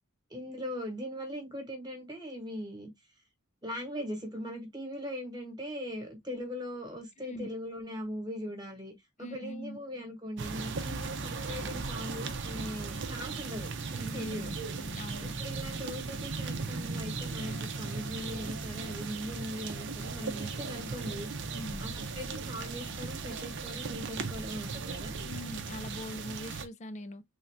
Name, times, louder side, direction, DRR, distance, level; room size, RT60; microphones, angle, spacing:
voice 1, 0.3-2.9 3.6-8.9 9.2-14.5 15.2-21.3 21.8-25.1, equal, 20° right, 1.4 m, -40 dB
voice 2, 7.2-7.5 9.2-9.8 14.0-15.4 21.5-21.9 25.2-27.2, left 1 dB, 30° left, 0.5 m, -42 dB
sound 1, 10.4-26.7, right 4 dB, 55° right, 0.7 m, -37 dB
sound 2, 17.4-23.4, equal, 70° left, 1.8 m, -53 dB
3.5 x 2.7 x 3.4 m
head